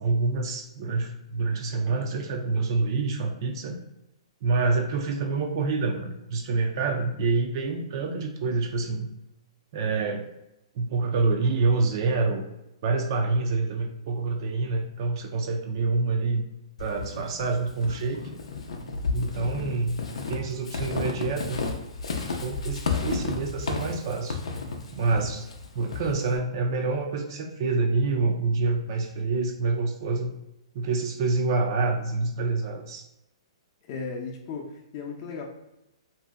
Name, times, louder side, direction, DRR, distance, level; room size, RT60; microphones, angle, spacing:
voice 1, 0.0-3.8 4.4-9.1 9.7-10.3 10.8-12.4 12.8-16.4 16.8-18.2 19.1-21.6 22.4-24.4 24.9-25.5 25.8-30.3 30.7-33.1, right 3 dB, 50° right, 3 dB, 0.3 m, -27 dB
Walk footsteps / Squeak, 16.8-26.4, left 4 dB, 80° left, 0.5 m, -33 dB
voice 2, 33.9-35.4, left 4 dB, 40° left, -1 dB, 0.6 m, -35 dB
2.7 x 2.1 x 3.4 m, 0.90 s
hypercardioid pair, 145°, 3 cm